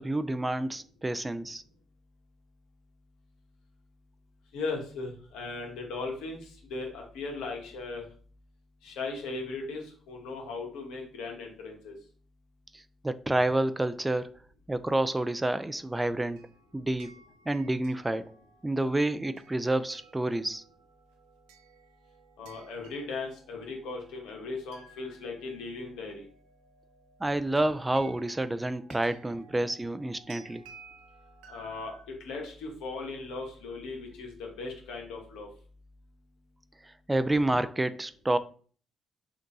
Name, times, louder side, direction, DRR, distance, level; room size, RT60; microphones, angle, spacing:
voice 1, 0.0-1.6 12.7-14.3 14.7-16.4 16.7-17.1 17.5-18.3 18.6-20.6 27.2-30.6 36.8-38.4, right 1 dB, 15° right, 0.3 m, -29 dB
voice 2, 4.5-6.4 6.7-8.0 8.8-11.9 22.4-26.2 31.5-31.9 32.2-35.5, left 3 dB, 80° left, 1.2 m, -37 dB
sound 1, 16.0-32.0, right 5 dB, 85° right, 0.5 m, -57 dB
3.7 x 2.6 x 3.8 m
hypercardioid pair, 50°, 0 cm